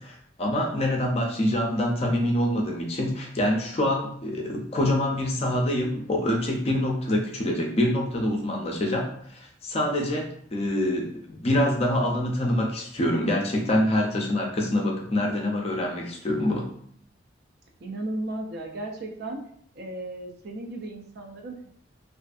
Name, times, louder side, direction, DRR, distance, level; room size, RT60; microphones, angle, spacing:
voice 1, 0.0-10.3 10.5-16.7, left 1 dB, 35° left, 0 dB, 0.4 m, -25 dB
voice 2, 17.8-19.4 19.8-21.7, right 1 dB, 55° right, 2 dB, 0.4 m, -35 dB
2.5 x 2.4 x 2.3 m, 0.63 s
head